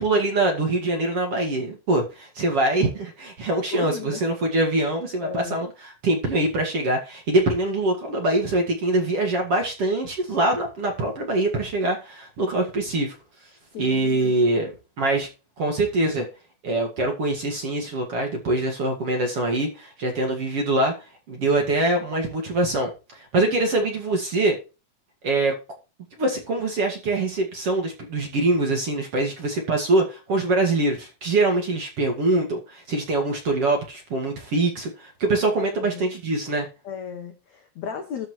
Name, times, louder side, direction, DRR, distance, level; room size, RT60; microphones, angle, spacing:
voice 1, 0.0-13.2 13.8-14.7 15.0-15.3 15.6-16.3 16.6-20.9 21.3-24.6 25.2-25.5 26.2-36.7, right 2 dB, 45° right, 2.2 m, -24 dB
voice 2, 3.7-4.2 5.2-5.6 13.7-14.3 35.6-36.0 36.8-38.3, left 7 dB, 75° left, 1.6 m, -35 dB
13.0 x 4.7 x 4.6 m
omnidirectional pair, 4.9 m